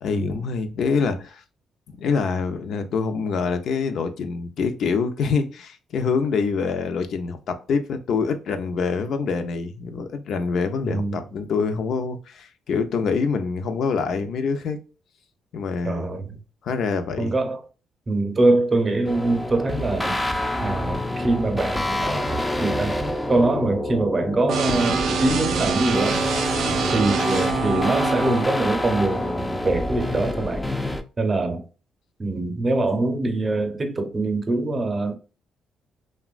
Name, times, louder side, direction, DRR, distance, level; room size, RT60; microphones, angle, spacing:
voice 1, 0.0-1.4 2.0-14.8 15.5-16.4 16.6-17.3 26.7-26.9, left 5 dB, 70° left, 0.5 m, -25 dB
voice 2, 10.8-11.2 15.8-16.3 17.2-17.6 18.1-20.1 20.6-23.0 23.3-26.3 26.9-30.7 31.2-31.7 32.2-35.2, right 2 dB, 30° right, 0.6 m, -23 dB
sound 1, 19.1-31.0, left 1 dB, 10° left, 0.4 m, -27 dB
sound 2, 24.5-28.5, right 6 dB, 75° right, 0.4 m, -25 dB
2.9 x 2.2 x 2.4 m
cardioid pair, 90°, 0 cm